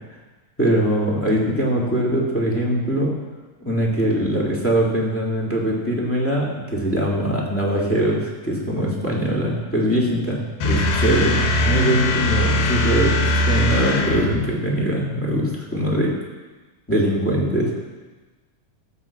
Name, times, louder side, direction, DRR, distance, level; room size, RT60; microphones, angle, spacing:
voice 1, 0.6-3.2 3.6-16.1 16.9-17.7, right 1 dB, 5° left, -3 dB, 1.5 m, -22 dB
sound 1, 10.6-14.5, left 1 dB, 85° left, 2.9 m, -20 dB
14.0 x 5.6 x 7.3 m, 1.2 s
omnidirectional pair, 3.7 m